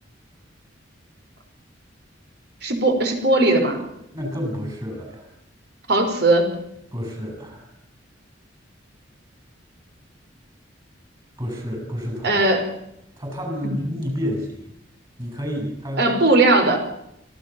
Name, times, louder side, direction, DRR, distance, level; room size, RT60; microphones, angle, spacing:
voice 1, 2.6-3.8 5.9-6.5 12.2-12.7 16.0-16.8, right 2 dB, 60° right, 5 dB, 5.5 m, -18 dB
voice 2, 4.1-5.3 6.9-7.7 11.4-12.4 13.2-14.7 15.2-16.1, equal, 25° right, 2 dB, 7.1 m, -29 dB
25.0 x 16.0 x 7.2 m, 0.80 s
head